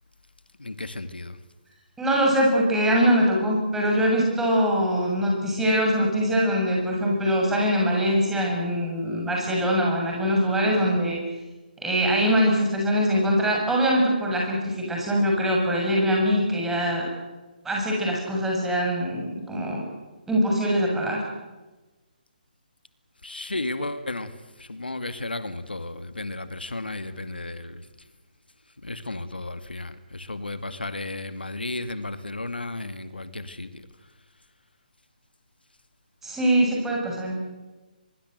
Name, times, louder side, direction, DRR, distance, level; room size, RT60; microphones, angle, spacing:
voice 1, 0.6-1.4 23.2-24.3 24.6-27.8 28.8-33.8, left 2 dB, 90° left, 11 dB, 2.2 m, -33 dB
voice 2, 2.0-11.2 11.8-17.1 17.6-19.9 20.3-21.2 36.2-37.3, equal, 5° right, -2 dB, 7.2 m, -23 dB
24.0 x 23.0 x 8.0 m, 1.2 s
figure-of-eight pair, 145°, 5 cm